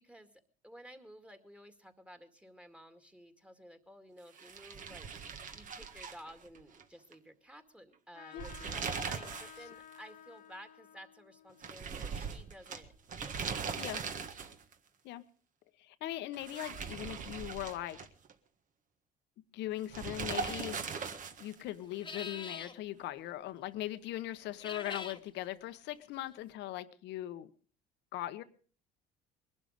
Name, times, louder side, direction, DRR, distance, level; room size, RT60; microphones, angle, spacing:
voice 1, 0.0-5.1 5.5-14.1, equal, 5° right, 8 dB, 2.1 m, -54 dB
sound 1, 4.3-6.8 7.1-7.2 8.2-9.6 9.9-10.0 11.6-14.7 16.3-18.3 19.9-21.6, right 6 dB, 45° right, 1.7 m, -40 dB
Trumpet, 8.1-13.1, left 10 dB, 50° left, 1.4 m, -55 dB
voice 2, 15.8-18.0 19.5-21.0 21.4-27.5 28.1-28.4, left 14 dB, 70° left, 13 dB, 1.2 m, -40 dB
sound 2, 20.3-20.7 21.9-22.8 24.5-25.2, left 5 dB, 25° left, 1.3 m, -43 dB
21.0 x 12.0 x 5.2 m, 0.41 s
supercardioid pair, 95°, 19 cm